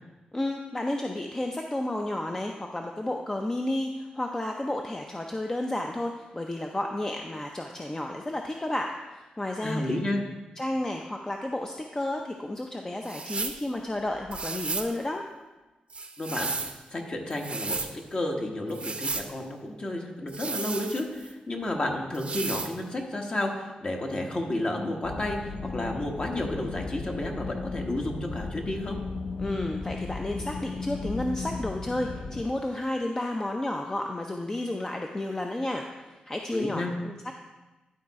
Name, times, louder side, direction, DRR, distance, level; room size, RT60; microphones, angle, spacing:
voice 1, 0.3-9.9 10.6-15.2 29.4-37.3, left 1 dB, 20° left, 2 dB, 0.6 m, -32 dB
voice 2, 9.6-10.2 16.2-16.5 16.9-29.0 36.5-36.9, left 1 dB, 40° left, 1 dB, 1.3 m, -31 dB
sound 1, 13.0-13.6 14.3-14.9 15.9-16.8 17.3-17.9 18.7-19.3 20.3-21.3 22.1-22.7, right 4 dB, 40° right, 0.6 m, -33 dB
sound 2, 25.0-32.4, left 4 dB, 75° left, 0.7 m, -35 dB
11.5 x 4.1 x 4.7 m, 1.1 s
cardioid pair, 90°, 3 cm